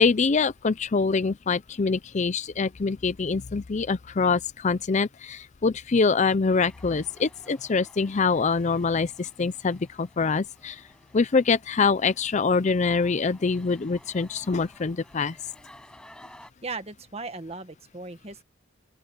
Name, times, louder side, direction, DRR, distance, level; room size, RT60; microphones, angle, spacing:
voice 1, 0.0-10.8 11.1-15.4, left 4 dB, 35° left, 0.5 m, -24 dB
sound 1, 6.3-16.5, left 1 dB, 5° left, 6.7 m, -54 dB
voice 2, 16.6-18.4, right 3 dB, 30° right, 1.6 m, -37 dB
open air
head